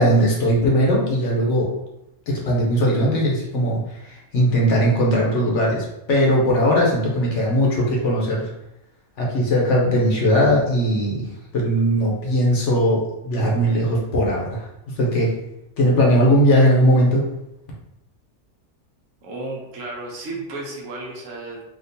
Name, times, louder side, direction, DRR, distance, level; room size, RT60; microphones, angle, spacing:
voice 1, 0.0-1.7 2.3-8.5 9.2-15.3 15.8-17.3, equal, 60° left, -3 dB, 1.0 m, -19 dB
voice 2, 19.2-21.6, right 2 dB, 70° right, -2 dB, 1.1 m, -33 dB
3.6 x 2.4 x 2.6 m, 0.86 s
omnidirectional pair, 1.5 m